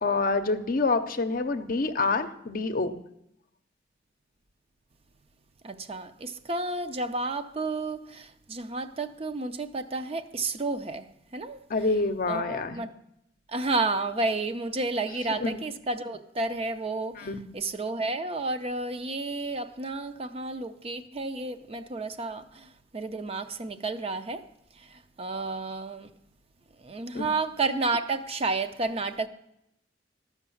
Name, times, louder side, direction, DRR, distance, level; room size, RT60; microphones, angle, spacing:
voice 1, 0.0-3.0 11.7-12.8 15.4-15.6 17.2-17.4 27.1-27.3, left 3 dB, 50° left, 0.6 m, -27 dB
voice 2, 5.6-11.1 11.3-11.6 12.3-12.9 13.5-24.4 24.8-26.1 26.8-29.3, right 3 dB, 35° right, 0.5 m, -31 dB
13.0 x 5.9 x 7.0 m
head